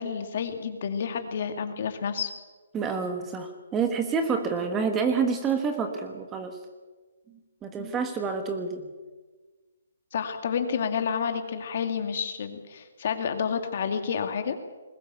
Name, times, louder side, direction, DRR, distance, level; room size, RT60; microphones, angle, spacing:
voice 1, 0.0-2.3 10.1-14.6, left 6 dB, 45° left, 7 dB, 2.3 m, -29 dB
voice 2, 2.7-6.6 7.3-8.9, right 5 dB, 10° right, 6 dB, 1.4 m, -28 dB
21.0 x 18.0 x 8.1 m, 1.3 s
hypercardioid pair, 170°, 0 cm